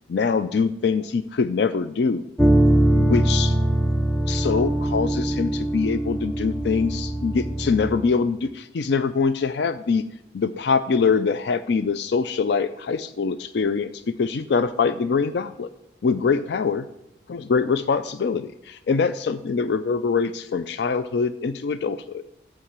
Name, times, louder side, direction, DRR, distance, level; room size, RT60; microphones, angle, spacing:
voice 1, 0.1-2.2 2.9-3.6 4.3-10.0 10.3-15.7 16.0-16.8 17.3-22.2, left 5 dB, 65° left, 11 dB, 0.4 m, -24 dB
sound 1, 2.4-8.0, right 1 dB, 5° left, 0.5 m, -22 dB
11.5 x 4.8 x 7.3 m, 0.85 s
head